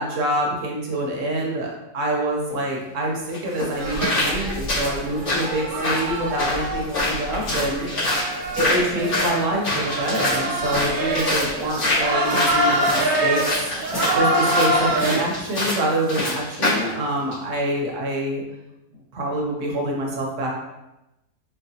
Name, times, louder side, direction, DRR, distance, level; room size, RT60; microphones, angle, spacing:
voice 1, 0.0-7.9 8.6-13.6 14.1-18.4 18.9-20.5, right 1 dB, 60° right, -1 dB, 1.0 m, -26 dB
sound 1, 2.5-2.6 3.3-16.9 17.3-17.4, left 2 dB, 80° left, 2.0 m, -26 dB
sound 2, 3.8-15.2, right 1 dB, 80° right, 0.4 m, -25 dB
4.6 x 2.1 x 2.7 m, 0.94 s
omnidirectional pair, 1.5 m